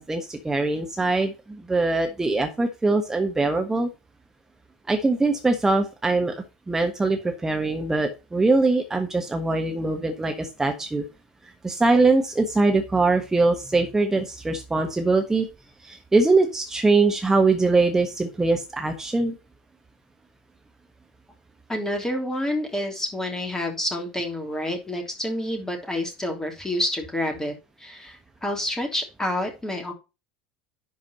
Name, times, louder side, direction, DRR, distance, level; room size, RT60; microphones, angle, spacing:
voice 1, 0.0-3.9 4.9-11.0 11.6-15.5 15.8-19.3, right 3 dB, 10° right, 4 dB, 1.3 m, -22 dB
voice 2, 21.7-27.5 27.8-29.9, left 1 dB, 10° left, 3 dB, 3.0 m, -28 dB
11.0 x 4.8 x 4.3 m, 0.28 s
figure-of-eight pair, 70°, 4 cm